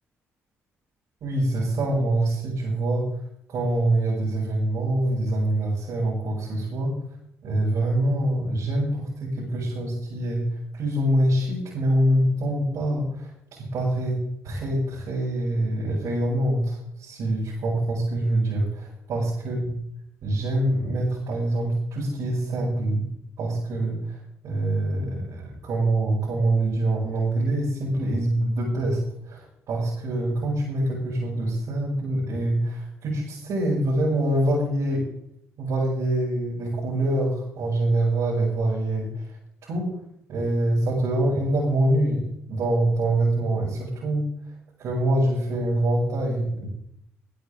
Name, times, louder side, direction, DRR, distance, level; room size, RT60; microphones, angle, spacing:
voice 1, 1.2-3.1 3.5-7.0 7.4-10.5 10.7-19.7 20.2-23.1 23.4-29.0 29.2-35.0 35.6-39.2 39.6-39.9 40.3-42.2 42.5-44.3 44.8-46.7, right 1 dB, 75° right, -7 dB, 6.3 m, -25 dB
19.5 x 11.5 x 3.5 m, 0.71 s
cardioid pair, 75°, 5 cm